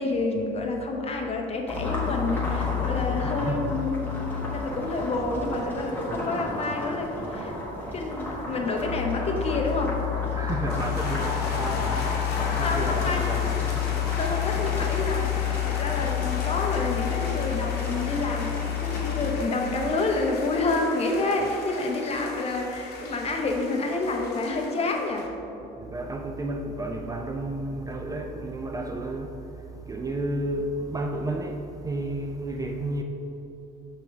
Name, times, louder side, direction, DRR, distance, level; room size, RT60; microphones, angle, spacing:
voice 1, 0.0-7.6 7.9-10.0 12.6-13.5 14.0-25.3, left 3 dB, 35° left, 0.8 m, -28 dB
sound 1, 1.7-19.3, left 8 dB, 10° left, 1.5 m, -29 dB
voice 2, 3.2-3.7 6.1-6.2 7.8-7.9 10.3-14.1 16.0-16.1 25.8-33.0, right 1 dB, 20° right, 0.4 m, -32 dB
sound 2, 10.7-25.3, left 4 dB, 70° left, 0.9 m, -37 dB
6.0 x 3.5 x 5.9 m
cardioid pair, 110°, 17 cm